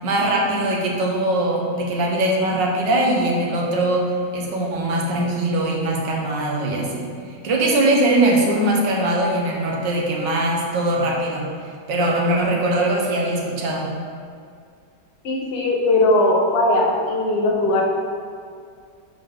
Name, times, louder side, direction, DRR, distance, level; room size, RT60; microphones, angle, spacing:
voice 1, 0.0-7.1 7.4-11.5 11.9-13.9, right 1 dB, 90° right, -1 dB, 1.7 m, -21 dB
voice 2, 15.2-17.8, left 2 dB, 45° left, -1 dB, 1.0 m, -19 dB
9.7 x 4.1 x 3.4 m, 2.2 s
omnidirectional pair, 1.9 m